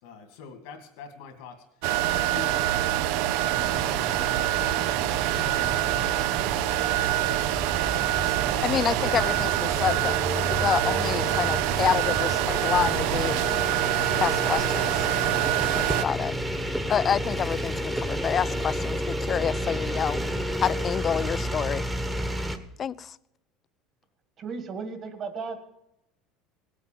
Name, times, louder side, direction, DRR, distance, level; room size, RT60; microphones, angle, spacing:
voice 1, 0.0-1.6 2.0-5.3 5.8-6.9, left 6 dB, 80° left, 6 dB, 2.4 m, -46 dB
sound 1, 1.8-16.1, right 14 dB, 75° right, 0.5 m, -25 dB
sound 2, 3.6-22.6, equal, 10° right, 1.1 m, -32 dB
voice 2, 8.6-13.4 14.2-15.1 15.8-16.3 16.9-21.9 22.8-23.2, left 8 dB, 35° left, 19 dB, 0.4 m, -28 dB
voice 3, 24.4-25.6, right 5 dB, 40° right, 7 dB, 2.0 m, -35 dB
17.0 x 8.1 x 7.5 m, 0.86 s
supercardioid pair, 125°, 0 cm